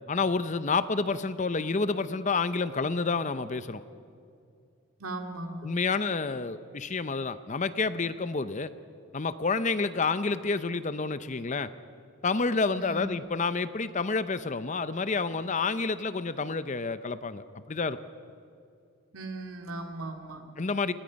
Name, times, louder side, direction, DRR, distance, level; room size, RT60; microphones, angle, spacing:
voice 1, 0.1-3.8 5.6-8.7 9.1-11.7 12.2-18.0 20.6-20.9, left 4 dB, 35° left, 13 dB, 0.6 m, -29 dB
voice 2, 5.0-5.7 12.8-13.1 19.1-20.4, right 2 dB, 75° right, 3 dB, 2.4 m, -38 dB
29.0 x 20.5 x 5.2 m, 2.4 s
head